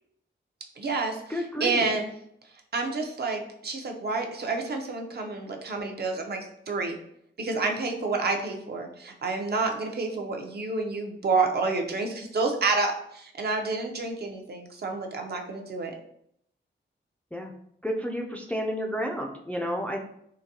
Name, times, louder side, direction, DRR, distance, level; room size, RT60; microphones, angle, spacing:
voice 1, 0.8-2.1 2.7-6.4 6.7-7.0 7.4-15.9, right 3 dB, 55° right, 3 dB, 0.5 m, -29 dB
voice 2, 1.3-1.8 17.3-17.5 17.8-20.0, equal, 5° left, 1 dB, 0.3 m, -31 dB
3.9 x 2.6 x 2.7 m, 0.72 s
wide cardioid pair, 145°, 20 cm